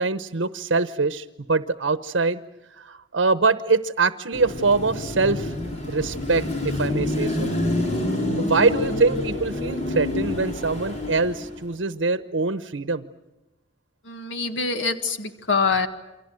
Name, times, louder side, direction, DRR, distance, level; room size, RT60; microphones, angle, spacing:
voice 1, 0.0-2.4 2.8-5.5 5.9-7.5 8.4-13.1, right 3 dB, 80° right, 12 dB, 0.9 m, -23 dB
Car passing by / Traffic noise roadway noise / Engine, 4.3-11.7, left 1 dB, 40° left, 4.4 m, -27 dB
voice 2, 14.0-15.9, left 4 dB, 80° left, 8 dB, 1.7 m, -24 dB
29.0 x 24.5 x 7.7 m, 1.0 s
head